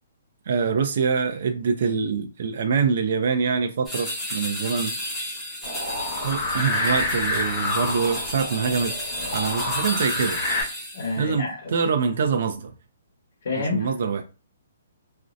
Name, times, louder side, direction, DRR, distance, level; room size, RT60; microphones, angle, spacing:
voice 1, 0.5-4.9 6.2-8.9 9.3-10.4 11.2-12.7 13.7-14.2, right 5 dB, 55° right, 0.3 m, -24 dB
sound 1, 3.9-11.2, equal, 5° left, 0.7 m, -32 dB
sound 2, 5.6-10.6, left 2 dB, 35° left, 1.0 m, -28 dB
voice 2, 10.9-11.8 13.4-13.9, left 3 dB, 65° left, 0.9 m, -29 dB
2.5 x 2.0 x 2.5 m
hypercardioid pair, 160°, 0 cm